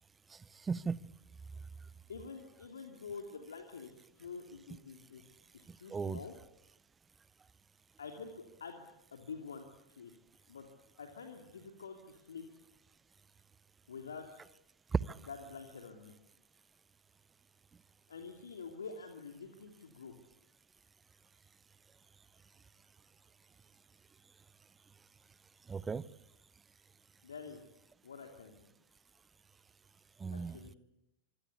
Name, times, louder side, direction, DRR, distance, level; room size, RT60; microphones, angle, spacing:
voice 1, 0.3-1.0 5.7-6.2 14.9-15.2 25.7-26.1 30.2-30.6, right 5 dB, 15° right, 21 dB, 0.9 m, -36 dB
voice 2, 2.1-3.9 4.2-5.2 5.5-6.3 8.0-10.1 10.5-10.7 11.0-12.4 13.9-14.3 15.3-16.1 18.1-20.2 27.2-27.6 28.0-28.7 30.3-30.8, left 5 dB, 70° left, 4 dB, 2.9 m, -47 dB
26.5 x 24.0 x 8.4 m, 0.84 s
figure-of-eight pair, 90°, 0 cm